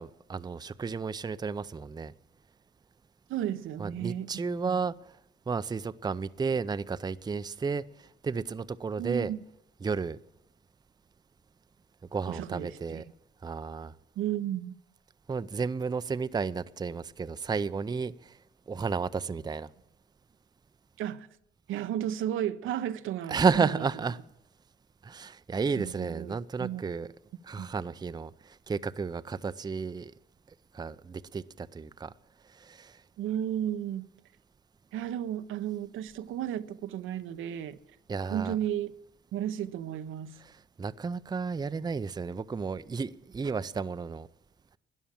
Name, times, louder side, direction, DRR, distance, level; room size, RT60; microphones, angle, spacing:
voice 1, 0.0-2.1 3.8-5.2 5.5-9.3 9.8-10.2 12.1-13.0 13.4-13.9 15.3-18.4 18.7-19.7 23.3-24.2 25.0-27.1 27.4-30.1 30.7-32.1 32.4-33.0 38.1-38.6 40.4-44.3, right 5 dB, 20° right, 0.5 m, -32 dB
voice 2, 3.3-4.8 9.0-9.4 12.3-13.0 14.2-14.7 21.0-21.3 21.7-23.7 25.8-26.8 27.6-27.7 33.2-34.1 34.9-37.8 38.3-38.9 39.3-40.4, right 11 dB, 80° right, 0.8 m, -33 dB
13.0 x 10.0 x 7.4 m
cardioid pair, 90°, 20 cm